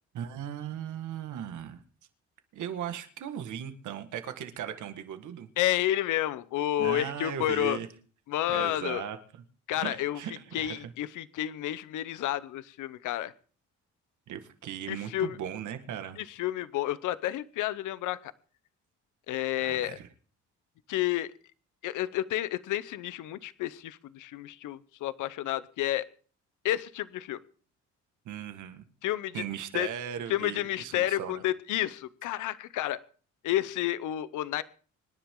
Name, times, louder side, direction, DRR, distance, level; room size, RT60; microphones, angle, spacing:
voice 1, 0.1-1.8 2.5-5.5 6.8-7.9 8.5-9.2 9.8-10.9 14.3-16.2 19.6-20.1 28.3-28.8 29.3-31.4, right 9 dB, 75° right, 8 dB, 1.8 m, -37 dB
voice 2, 5.6-7.8 8.3-9.0 9.7-10.2 10.5-13.3 14.9-15.4 16.2-18.3 19.3-20.0 20.9-21.3 21.8-26.1 26.6-27.4 29.0-29.4 29.7-29.9 30.3-33.0 33.4-34.6, left 13 dB, 85° left, 16 dB, 0.9 m, -30 dB
25.5 x 10.5 x 3.8 m, 0.41 s
cardioid pair, 90°, 30 cm